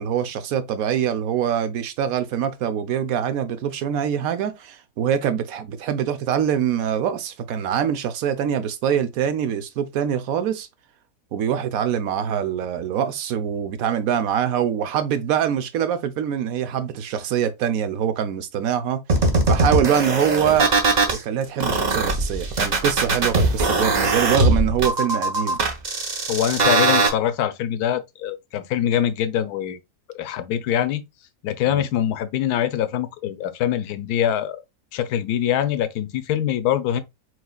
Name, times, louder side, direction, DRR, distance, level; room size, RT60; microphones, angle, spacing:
voice 1, 0.0-10.7 11.3-19.0 19.5-20.7 21.1-25.6 31.7-31.8, right 9 dB, 70° right, 1.0 m, -24 dB
sound 1, 19.1-21.2 21.6-27.1, right 2 dB, 35° right, 0.7 m, -20 dB
voice 2, 26.3-29.8 30.1-31.0 31.4-34.6 34.9-37.0, left 10 dB, 80° left, 1.1 m, -24 dB
4.8 x 3.9 x 2.2 m
omnidirectional pair, 1.6 m